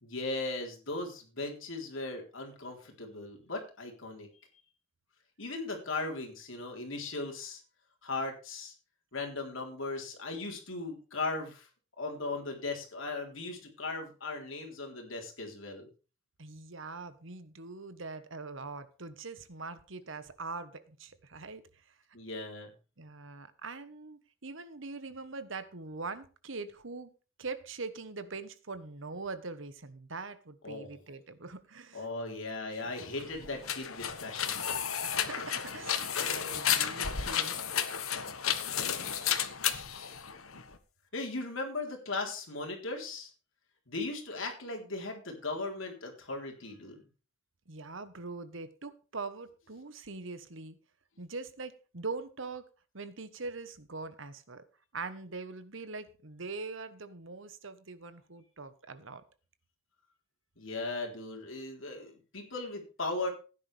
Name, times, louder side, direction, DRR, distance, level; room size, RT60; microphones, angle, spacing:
voice 1, 0.0-4.3 5.4-7.6 8.0-8.7 9.1-11.7 12.0-15.9 22.1-22.7 30.6-31.0 31.9-34.6 41.1-43.3 43.9-47.0 60.6-63.3, left 3 dB, 65° left, 1 dB, 3.7 m, -38 dB
voice 2, 16.4-21.6 23.0-27.1 27.4-32.1 35.0-37.6 47.7-50.8 51.2-52.6 52.9-54.6 54.9-59.2, right 3 dB, 65° right, 12 dB, 1.2 m, -42 dB
sound 1, 32.9-40.8, left 9 dB, 85° left, 1.3 m, -33 dB
16.0 x 10.0 x 3.4 m, 0.35 s
head